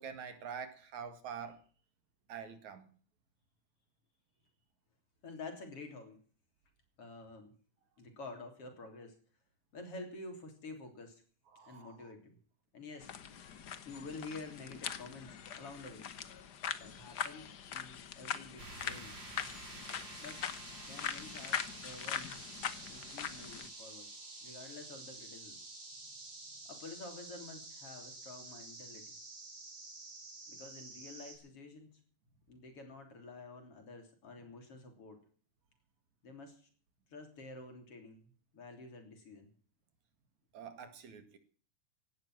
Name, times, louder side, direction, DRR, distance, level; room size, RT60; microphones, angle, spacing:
voice 1, 0.0-1.6 2.3-2.9 11.5-12.1 40.5-41.4, right 7 dB, 70° right, 3.3 m, -46 dB
voice 2, 5.2-6.2 7.0-7.5 8.0-9.2 9.7-11.2 11.7-12.4 12.7-13.1 13.8-16.1 16.8-19.2 20.2-20.4 20.9-22.4 22.9-24.1 24.4-25.6 26.7-29.1 30.5-32.0 32.5-35.2 36.2-36.7 37.1-39.5, left 3 dB, 50° left, 4.2 m, -49 dB
sound 1, 13.0-23.7, left 8 dB, 85° left, 0.9 m, -42 dB
sound 2, 18.6-31.4, right 2 dB, 35° right, 5.4 m, -49 dB
17.0 x 11.5 x 6.2 m
omnidirectional pair, 3.5 m